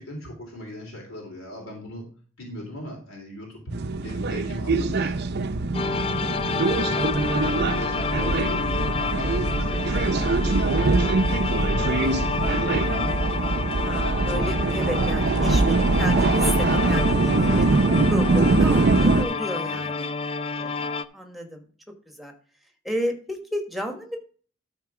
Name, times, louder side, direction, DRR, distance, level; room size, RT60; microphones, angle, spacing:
voice 1, 0.0-2.0 2.4-3.6 4.0-5.2 5.8-7.0 7.3-13.1 19.6-19.8, left 1 dB, 80° left, 0 dB, 3.4 m, -39 dB
sound 1, 3.7-19.2, right 3 dB, 50° right, 0.6 m, -23 dB
sound 2, 5.7-21.0, left 5 dB, 25° left, 0.4 m, -29 dB
voice 2, 5.8-6.3 13.8-17.7 18.1-20.1 20.4-21.6 22.0-22.3 22.8-24.2, equal, ahead, 4 dB, 1.4 m, -33 dB
12.5 x 4.5 x 4.8 m, 0.42 s
head